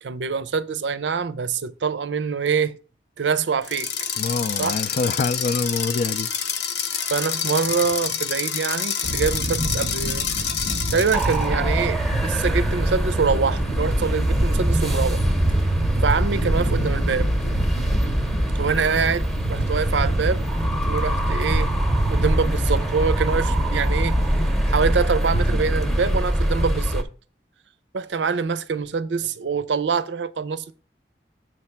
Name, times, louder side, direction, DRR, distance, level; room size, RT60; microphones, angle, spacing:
voice 1, 0.0-2.8 3.2-3.9 4.6-4.8 7.1-10.5 10.9-15.2 16.0-17.3 18.6-20.5 20.8-21.7 22.1-24.2 24.7-27.1 27.9-30.7, right 5 dB, 85° right, 0.5 m, -25 dB
sound 1, 3.6-11.4, left 7 dB, 70° left, 0.8 m, -27 dB
voice 2, 4.2-6.3, left 4 dB, 50° left, 0.4 m, -25 dB
sound 2, 9.0-26.2, right 1 dB, 85° left, 1.8 m, -28 dB
sound 3, 11.1-27.0, right 1 dB, ahead, 0.8 m, -23 dB
7.5 x 3.3 x 5.7 m
head